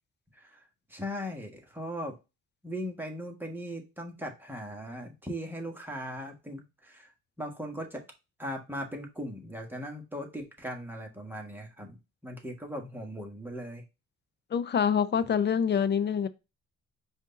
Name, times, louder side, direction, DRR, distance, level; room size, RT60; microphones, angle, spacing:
voice 1, 0.9-2.1 2.6-7.1 7.4-8.0 8.4-12.0 12.2-13.8, equal, 5° right, 1.4 m, -38 dB
voice 2, 14.5-16.3, left 7 dB, 35° left, 0.5 m, -26 dB
5.0 x 2.6 x 4.0 m
cardioid pair, 90°, 30 cm